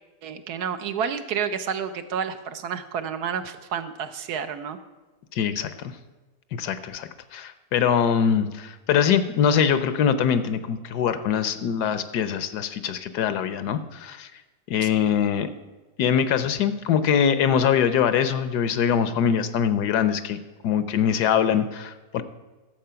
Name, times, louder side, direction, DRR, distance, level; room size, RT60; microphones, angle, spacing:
voice 1, 0.2-4.8 14.8-15.1, right 7 dB, 70° right, 10 dB, 1.2 m, -30 dB
voice 2, 5.3-5.9 6.5-14.3 14.7-15.5 16.0-20.4 20.6-22.2, left 8 dB, 75° left, 12 dB, 1.2 m, -23 dB
12.5 x 7.4 x 5.7 m, 1.2 s
omnidirectional pair, 1.8 m